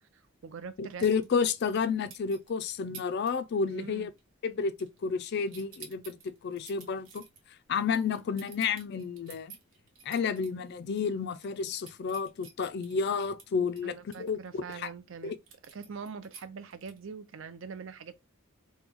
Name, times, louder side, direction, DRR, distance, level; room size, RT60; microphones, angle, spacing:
voice 1, 0.1-1.3 3.7-4.1 13.8-15.3 15.7-18.1, right 5 dB, 60° right, 0.5 m, -43 dB
voice 2, 0.8-4.1 4.4-6.2 6.4-7.2 7.7-9.5 10.1-14.9 15.2-15.4, left 5 dB, 50° left, 0.3 m, -31 dB
sound 1, 1.0-2.5 2.9-3.3 3.6-3.9 4.2-5.2 5.5-10.5 10.9-11.0 11.3-14.9 15.5-17.1, right 6 dB, 80° right, 1.0 m, -51 dB
3.0 x 2.2 x 3.5 m
head